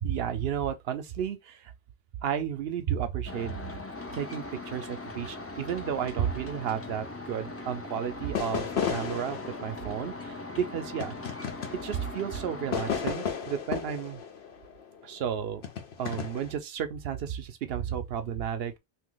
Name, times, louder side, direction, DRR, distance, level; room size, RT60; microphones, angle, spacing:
voice 1, 0.0-1.7 2.2-3.5 4.1-11.4 11.7-14.2 15.0-15.6 16.0-18.8, right 8 dB, 75° right, 0.8 m, -32 dB
sound 1, 3.3-13.1, left 2 dB, 20° left, 0.4 m, -40 dB
sound 2, 8.3-12.2 12.7-15.1 15.6-16.5, left 7 dB, 85° left, 1.0 m, -34 dB
2.8 x 2.4 x 3.8 m
omnidirectional pair, 1.0 m